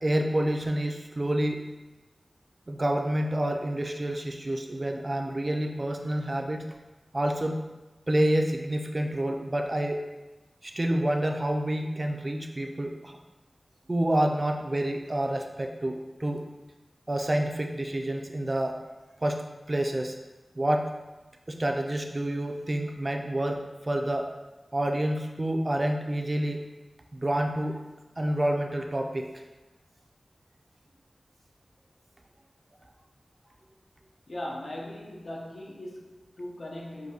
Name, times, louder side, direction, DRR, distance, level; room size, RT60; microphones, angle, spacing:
voice 1, 0.0-1.6 2.7-6.7 7.1-7.6 8.1-10.0 10.6-13.2 13.9-16.4 17.1-18.8 19.2-19.4 19.7-20.2 20.6-20.9 21.5-24.3 24.7-26.6 27.1-27.8 28.2-29.3, right 1 dB, 35° right, 3 dB, 0.4 m, -28 dB
voice 2, 34.3-37.1, left 1 dB, 75° left, -2 dB, 0.7 m, -39 dB
5.7 x 2.7 x 2.7 m, 1.1 s
wide cardioid pair, 70°, 0 cm